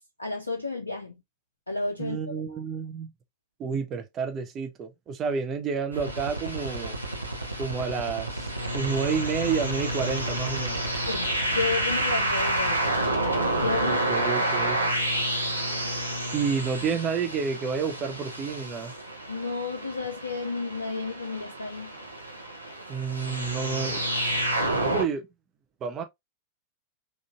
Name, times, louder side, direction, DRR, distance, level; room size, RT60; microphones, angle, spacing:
voice 1, 0.2-1.1 1.7-2.4 11.1-12.9 13.5-14.9 19.3-21.9, left 3 dB, 80° left, 0.4 m, -32 dB
voice 2, 2.0-3.1 3.6-7.0 7.6-10.8 13.8-14.8 16.3-18.9 22.9-24.0 24.8-25.3 25.8-26.0, right 6 dB, 30° right, 0.5 m, -30 dB
sound 1, 5.9-25.0, right 1 dB, 85° right, 0.7 m, -29 dB
3.7 x 2.4 x 2.4 m
figure-of-eight pair, 90°, 0 cm